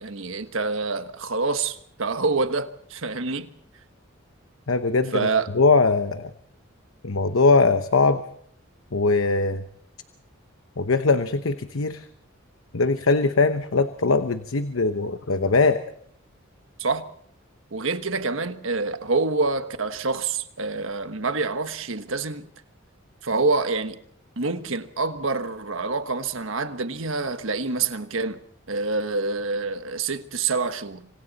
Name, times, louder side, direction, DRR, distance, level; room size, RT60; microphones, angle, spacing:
voice 1, 0.0-3.5 5.1-5.5 16.8-17.1 17.7-22.5 23.2-24.0 24.4-28.4 28.7-31.1, right 3 dB, 70° right, 1.4 m, -26 dB
voice 2, 4.7-5.3 5.5-6.3 7.0-8.2 8.9-9.6 10.8-12.0 12.7-15.8, left 3 dB, 75° left, 1.0 m, -21 dB
26.5 x 26.0 x 4.2 m
head